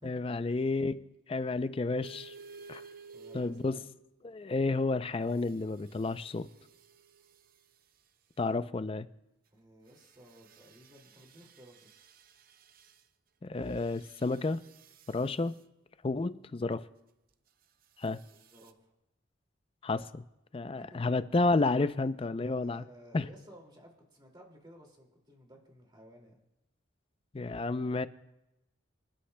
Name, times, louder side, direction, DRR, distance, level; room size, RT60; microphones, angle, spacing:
voice 1, 0.0-2.3 2.7-2.8 3.3-3.8 4.2-6.5 8.4-9.1 13.4-14.6 15.1-15.5 16.0-16.9 18.0-18.2 19.8-20.2 20.5-22.8 23.1-23.3 27.3-28.1, left 3 dB, 25° left, 0.4 m, -31 dB
sound 1, 2.0-4.1 5.3-7.7 9.9-13.0 13.7-15.6 18.0-18.7, right 5 dB, 45° right, 0.5 m, -55 dB
voice 2, 3.1-3.8 8.7-8.8 9.5-12.0 18.3-18.9 20.8-21.2 22.4-26.4, equal, 20° right, 2.2 m, -56 dB
26.0 x 11.5 x 2.2 m
head